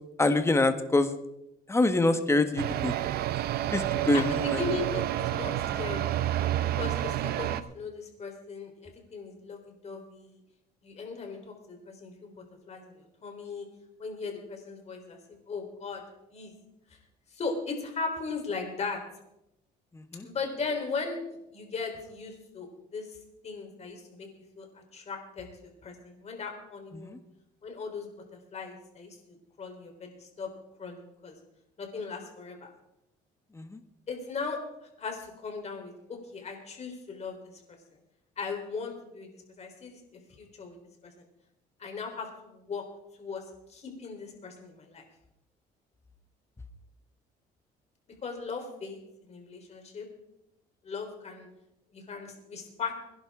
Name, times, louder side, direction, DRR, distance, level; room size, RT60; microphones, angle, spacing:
voice 1, 0.2-1.1 1.7-3.0 3.7-4.6 19.9-20.3 27.0-27.2 33.5-33.8, left 2 dB, 15° left, 8 dB, 1.3 m, -25 dB
sound 1, 2.6-7.6, right 12 dB, 65° right, 0.7 m, -29 dB
voice 2, 4.1-6.1 6.8-10.4 10.8-12.3 12.7-13.7 14.0-16.0 16.3-16.5 16.9-17.0 17.3-19.0 20.2-21.2 21.5-23.2 23.4-24.3 24.6-27.2 27.6-30.5 30.8-31.3 31.8-32.7 34.1-34.6 35.0-37.4 38.4-40.0 40.4-40.8 41.0-41.1 41.8-42.8 43.2-43.4 43.7-45.0 48.2-50.1 50.8-51.5 51.9-53.0, left 4 dB, 40° left, 2 dB, 3.9 m, -38 dB
22.5 x 11.0 x 3.7 m, 0.85 s
cardioid pair, 110°, 17 cm